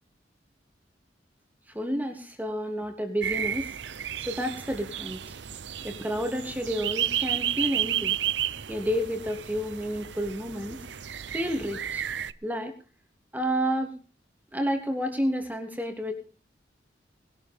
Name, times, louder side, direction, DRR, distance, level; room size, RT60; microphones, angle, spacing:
voice 1, 1.7-3.7 4.3-5.2 5.8-8.2 8.7-10.8 11.3-12.0 12.4-12.8 13.3-14.0 14.5-16.1, equal, 10° right, 4 dB, 2.9 m, -30 dB
sound 1, 3.2-12.3, right 10 dB, 80° right, 0.7 m, -32 dB
20.5 x 13.0 x 3.6 m, 0.37 s
head